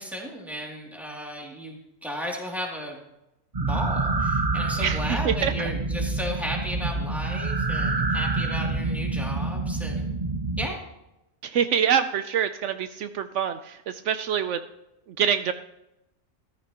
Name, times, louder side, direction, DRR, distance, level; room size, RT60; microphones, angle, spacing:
voice 1, 0.0-3.0 3.6-10.0 10.6-10.8, equal, ahead, -2 dB, 2.5 m, -34 dB
sound 1, 3.5-10.7, right 3 dB, 30° right, 1.0 m, -27 dB
voice 2, 4.8-5.7 11.4-14.6 15.2-15.5, right 8 dB, 75° right, 10 dB, 0.9 m, -25 dB
14.0 x 13.5 x 2.9 m, 0.89 s
omnidirectional pair, 1.3 m